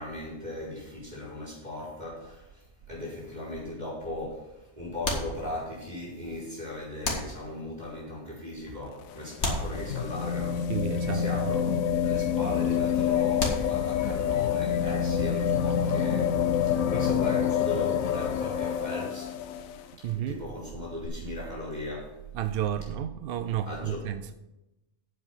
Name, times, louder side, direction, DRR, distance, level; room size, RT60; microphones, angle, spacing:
voice 1, 0.0-10.7 11.1-19.3 20.1-22.1 23.6-24.1, left 1 dB, 30° right, 4.6 m, -38 dB
sound 1, 3.2-3.8 5.0-6.0 7.0-7.9 9.4-10.5 13.4-14.2, left 2 dB, 55° left, 2.2 m, -34 dB
sound 2, 8.9-19.8 21.0-21.1, left 8 dB, 85° left, 1.1 m, -27 dB
voice 2, 10.7-11.5 20.0-20.4 22.3-24.4, right 10 dB, 65° right, 0.6 m, -32 dB
9.4 x 7.6 x 5.8 m
omnidirectional pair, 1.4 m